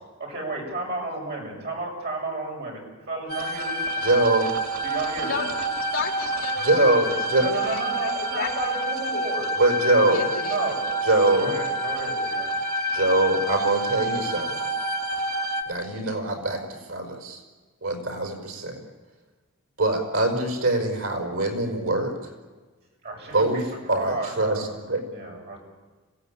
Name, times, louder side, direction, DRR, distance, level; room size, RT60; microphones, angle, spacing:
voice 1, 0.2-2.8 3.1-3.8 4.8-5.4 7.4-9.5 10.5-10.9 11.4-12.5 23.0-24.7 25.1-25.6, right 2 dB, 45° right, -1 dB, 7.2 m, -32 dB
sound 1, 3.3-15.6, right 1 dB, 90° right, 2.3 m, -28 dB
voice 2, 4.0-4.5 6.6-7.5 9.6-10.3 11.0-11.5 12.9-14.5 15.7-16.6 16.9-17.4 17.8-18.8 19.8-22.1 23.3-23.6 23.9-25.0, right 2 dB, 70° right, 2 dB, 5.4 m, -23 dB
voice 3, 5.2-9.3 10.1-10.8, left 4 dB, 60° left, 1 dB, 3.5 m, -34 dB
26.5 x 17.5 x 8.7 m, 1.4 s
head